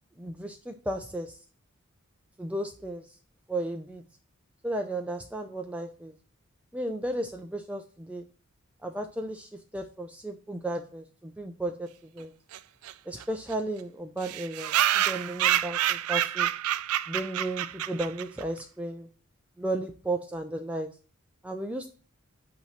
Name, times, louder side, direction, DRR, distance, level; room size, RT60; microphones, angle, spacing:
voice 1, 0.2-1.4 2.4-3.1 3.5-4.0 4.6-6.1 6.7-8.2 8.8-12.3 13.1-16.5 17.1-19.1 19.6-20.9 21.4-21.9, right 1 dB, 5° right, 4 dB, 0.4 m, -34 dB
sound 1, 12.5-12.6 12.9-13.0 13.2-13.3 13.5-13.6 14.2-18.4, right 12 dB, 80° right, 0.4 m, -27 dB
8.6 x 2.9 x 5.6 m, 0.40 s
head